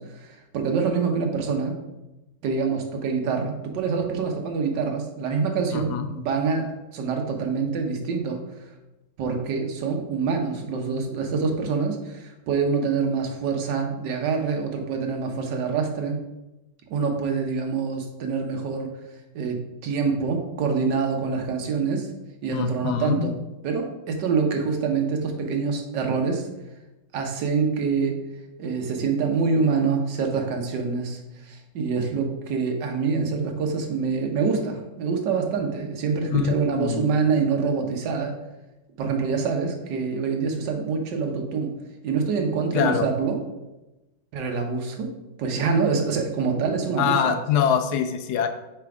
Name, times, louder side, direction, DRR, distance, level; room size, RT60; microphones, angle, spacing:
voice 1, 0.0-1.8 2.4-8.4 9.2-16.2 16.9-18.9 19.3-19.6 19.8-22.1 22.4-23.3 23.6-26.5 27.1-28.2 28.6-38.3 39.0-41.7 42.0-43.4 44.3-45.1 45.4-47.3, right 5 dB, 65° right, 3 dB, 1.5 m, -25 dB
voice 2, 5.7-6.1 22.5-23.3 36.3-37.1 42.7-43.1 47.0-48.5, left 8 dB, 70° left, 7 dB, 1.0 m, -24 dB
7.4 x 3.4 x 4.8 m, 1.0 s
omnidirectional pair, 2.1 m